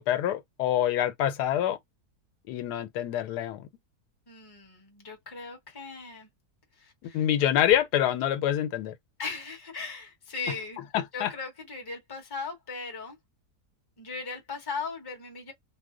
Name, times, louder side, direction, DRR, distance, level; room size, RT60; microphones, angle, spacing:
voice 1, 0.0-1.8 2.5-3.7 7.0-8.9 10.9-11.3, left 11 dB, 90° left, 1.2 m, -26 dB
voice 2, 4.3-6.3 6.8-7.2 9.2-10.8 11.1-13.2 14.0-15.5, left 4 dB, 20° left, 0.8 m, -38 dB
2.8 x 2.1 x 3.6 m
omnidirectional pair, 1.7 m